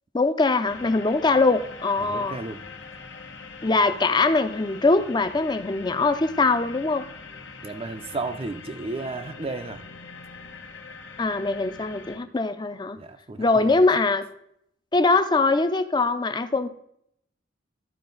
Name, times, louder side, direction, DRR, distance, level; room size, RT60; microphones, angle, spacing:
voice 1, 0.1-2.4 3.6-7.1 11.2-13.0 13.4-14.3 14.9-16.7, left 3 dB, 25° left, 10 dB, 0.5 m, -22 dB
sound 1, 0.6-12.2, left 4 dB, 85° left, 1.1 m, -43 dB
voice 2, 2.0-2.6 7.6-9.8 12.9-13.8, right 3 dB, 30° right, 7 dB, 0.4 m, -33 dB
12.5 x 4.7 x 3.9 m, 0.72 s
head